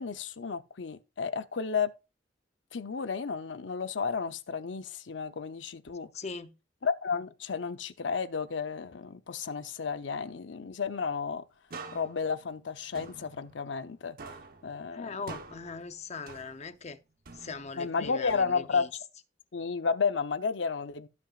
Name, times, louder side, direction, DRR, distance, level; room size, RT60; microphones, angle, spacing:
voice 1, 0.0-1.9 2.7-6.1 6.8-11.4 11.9-14.2 14.6-15.1 17.8-18.9 19.5-21.1, left 5 dB, 85° left, 0.7 m, -32 dB
voice 2, 6.1-6.5 14.9-17.0 17.3-18.9, left 4 dB, 40° left, 0.7 m, -40 dB
sound 1, 11.7-13.9 14.2-16.9 17.3-18.9, right 3 dB, 55° right, 1.0 m, -47 dB
16.5 x 6.0 x 2.4 m
head